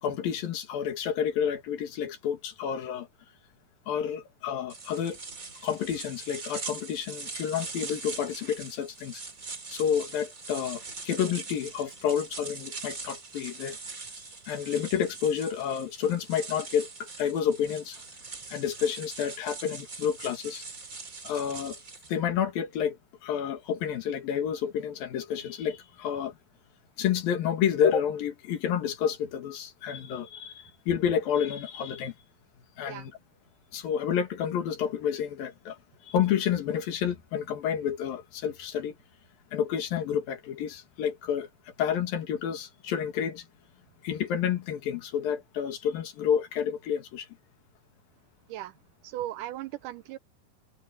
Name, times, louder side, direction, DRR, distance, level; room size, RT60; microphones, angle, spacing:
voice 1, 0.0-3.1 3.9-5.2 5.6-9.2 9.7-13.8 14.5-18.0 18.5-20.7 21.2-21.8 22.1-23.0 23.2-26.3 27.0-32.1 32.8-33.1 33.7-35.8 36.1-39.0 39.5-41.5 41.8-43.5 44.0-47.3, left 8 dB, 85° left, 3.8 m, -29 dB
sound 1, 4.7-22.1, right 4 dB, 25° right, 2.4 m, -42 dB
voice 2, 49.0-50.2, right 14 dB, 80° right, 2.0 m, -37 dB
omnidirectional pair, 4.0 m